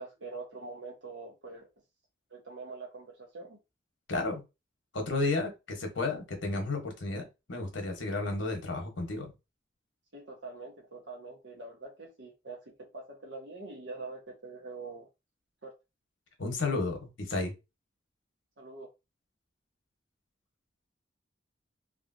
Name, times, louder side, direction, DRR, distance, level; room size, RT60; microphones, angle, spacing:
voice 1, 0.0-1.7 2.3-3.6 10.1-15.1 15.6-15.7 18.6-18.9, right 3 dB, 70° right, 1.3 m, -44 dB
voice 2, 4.1-4.4 4.9-9.3 16.4-17.5, left 3 dB, 90° left, 1.1 m, -32 dB
3.2 x 2.5 x 2.7 m
head